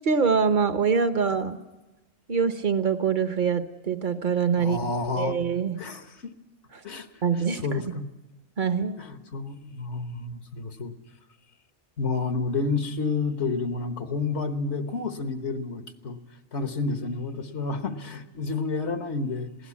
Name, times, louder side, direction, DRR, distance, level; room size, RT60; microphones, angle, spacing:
voice 1, 0.0-1.6 2.3-4.8 5.1-5.8 7.2-7.7 8.6-9.0, right 6 dB, 45° right, 10 dB, 1.1 m, -24 dB
voice 2, 4.6-5.4 5.8-6.0 6.8-7.1 7.6-8.1 9.0-10.9 12.0-16.2 16.5-19.5, left 4 dB, 75° left, 8 dB, 1.6 m, -30 dB
21.5 x 16.5 x 8.4 m, 1.1 s
omnidirectional pair, 1.2 m